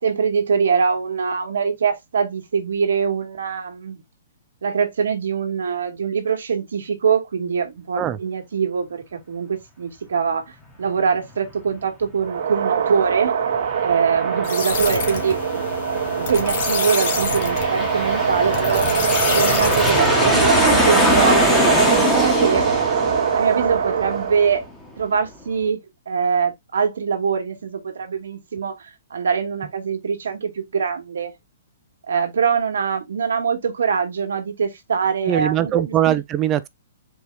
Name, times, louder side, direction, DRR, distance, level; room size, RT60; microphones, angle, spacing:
voice 1, 0.0-4.0 4.6-10.4 10.8-13.3 13.8-15.7 16.1-18.9 19.3-22.7 23.3-24.6 25.0-25.8 26.1-31.3 32.1-36.2, right 6 dB, 85° right, 1.5 m, -23 dB
sound 1, 12.2-24.6, right 7 dB, 60° right, 0.8 m, -23 dB
Aircraft, 13.5-24.7, left 1 dB, 5° left, 1.0 m, -23 dB
sound 2, 14.4-20.8, left 5 dB, 50° left, 1.5 m, -28 dB
voice 2, 35.3-36.7, right 12 dB, 20° right, 0.3 m, -21 dB
4.6 x 2.8 x 3.2 m
hypercardioid pair, 160°, 0 cm